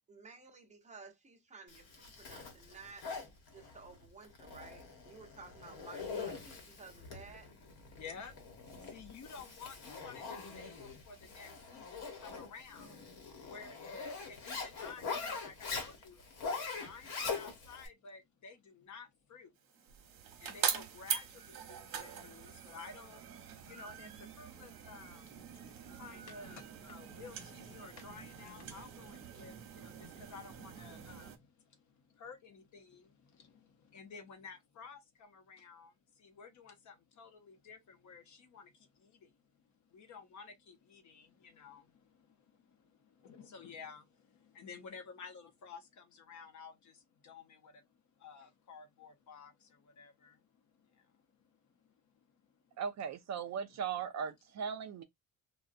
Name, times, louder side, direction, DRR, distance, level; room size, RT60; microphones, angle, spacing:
voice 1, 0.1-3.1 3.5-7.5, right 4 dB, 20° right, 0.7 m, -54 dB
Zipper (clothing), 1.7-17.9, left 4 dB, 80° left, 1.1 m, -43 dB
voice 2, 7.9-16.3 16.7-19.6 20.4-52.8, left 5 dB, 50° left, 0.7 m, -53 dB
sound 1, 19.7-31.4, right 8 dB, 65° right, 0.9 m, -43 dB
voice 3, 52.8-55.0, right 7 dB, 50° right, 0.4 m, -38 dB
3.7 x 2.1 x 2.5 m
cardioid pair, 175°, 37 cm